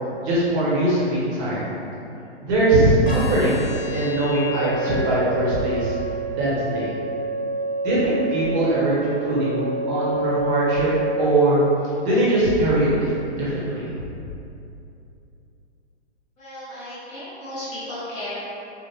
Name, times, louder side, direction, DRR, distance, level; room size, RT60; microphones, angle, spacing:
voice 1, 0.2-1.6 2.4-3.6 3.9-5.9 6.4-6.9 7.8-10.9 11.2-11.6 12.0-13.1 13.4-13.9, right 1 dB, 25° right, -8 dB, 0.9 m, -21 dB
sound 1, 3.1-11.1, right 3 dB, 65° left, 1.1 m, -28 dB
voice 2, 16.4-18.4, left 1 dB, 20° left, -11 dB, 0.8 m, -34 dB
3.4 x 2.0 x 3.0 m, 2.7 s
figure-of-eight pair, 125°, 34 cm